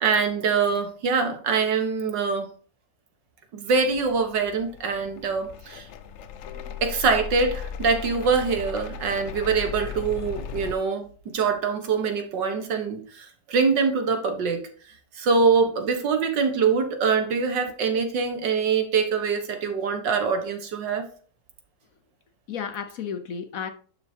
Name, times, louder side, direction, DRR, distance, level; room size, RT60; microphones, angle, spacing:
voice 1, 0.0-2.5 3.5-5.9 6.8-14.6 15.2-21.0, right 5 dB, 85° right, 2.0 m, -24 dB
sound 1, 3.7-10.7, left 7 dB, 80° left, 0.6 m, -37 dB
voice 2, 6.4-6.8 22.5-23.7, left 7 dB, 60° left, 1.1 m, -34 dB
11.0 x 6.0 x 2.8 m
omnidirectional pair, 1.9 m